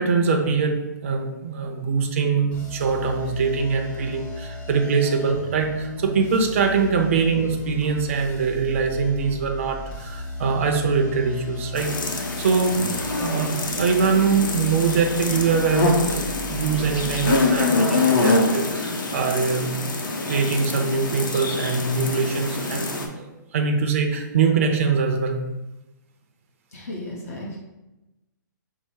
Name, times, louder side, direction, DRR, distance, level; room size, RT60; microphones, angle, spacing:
voice 1, 0.0-25.4, right 5 dB, 40° right, 3 dB, 0.5 m, -23 dB
sound 1, 2.5-17.3, left 1 dB, 25° left, 1.4 m, -36 dB
sound 2, 11.8-23.1, left 3 dB, 80° left, 0.8 m, -25 dB
voice 2, 26.7-27.6, left 1 dB, 45° left, -3 dB, 1.0 m, -35 dB
5.4 x 2.0 x 4.5 m, 1.0 s
hypercardioid pair, 170°, 11 cm